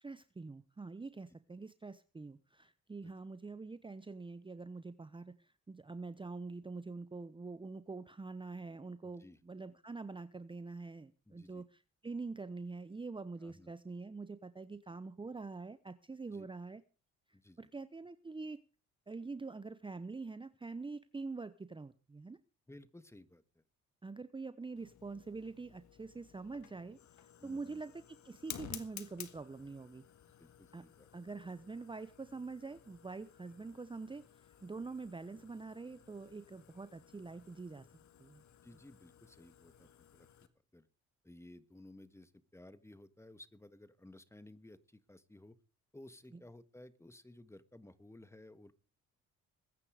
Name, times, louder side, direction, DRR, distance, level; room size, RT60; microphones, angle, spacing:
voice 1, 0.0-16.8 17.6-18.6 19.1-22.4 24.0-27.0 27.4-30.0 30.7-30.8 31.1-37.9 38.2-38.4, right 3 dB, 15° right, 13 dB, 0.9 m, -45 dB
voice 2, 9.0-9.4 11.3-11.6 13.4-13.7 16.3-16.5 17.3-17.7 22.7-23.6 27.4-27.8 30.4-30.5 30.8-31.1 38.6-40.5 40.7-40.9 41.2-45.6 45.9-48.7, left 1 dB, 10° left, 13 dB, 1.5 m, -56 dB
Fire, 24.8-40.5, left 10 dB, 70° left, 1.9 m, -55 dB
21.0 x 9.8 x 5.0 m, 0.36 s
cardioid pair, 90°, 30 cm